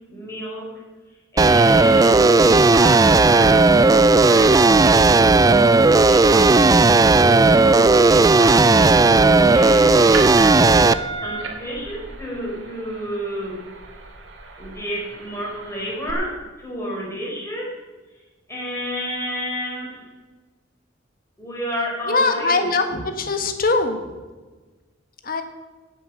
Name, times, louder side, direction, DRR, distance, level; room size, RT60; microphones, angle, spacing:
voice 1, 0.1-0.8 1.3-6.7 7.2-9.0 9.5-10.3 11.2-13.6 14.6-17.7 18.1-18.2 18.5-20.1 21.4-22.7, equal, 15° left, -4 dB, 4.7 m, -31 dB
sound 1, 1.4-10.9, right 3 dB, 20° right, 0.3 m, -14 dB
sound 2, 7.4-16.1, right 3 dB, 65° right, 2.6 m, -35 dB
voice 2, 22.1-24.0 25.2-25.4, left 3 dB, 45° left, 7 dB, 1.5 m, -21 dB
17.5 x 7.7 x 6.5 m, 1.3 s
head